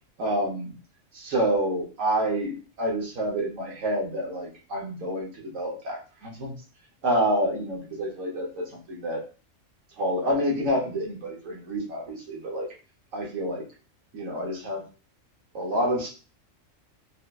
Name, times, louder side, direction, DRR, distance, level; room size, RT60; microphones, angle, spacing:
voice 1, 0.2-0.7 1.1-6.6 7.0-9.2 10.0-12.7 13.1-13.6 14.1-14.8 15.5-16.1, equal, 80° right, -1 dB, 1.3 m, -28 dB
3.7 x 2.1 x 2.3 m, 0.35 s
omnidirectional pair, 1.3 m